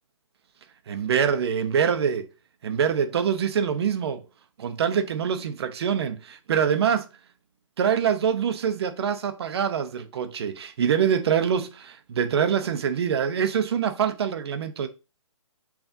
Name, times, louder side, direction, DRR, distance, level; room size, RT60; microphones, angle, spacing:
voice 1, 0.9-2.3 2.6-4.2 4.6-7.1 7.8-14.9, right 7 dB, 50° right, 0.6 m, -25 dB
7.1 x 2.5 x 2.5 m
hypercardioid pair, 150°, 17 cm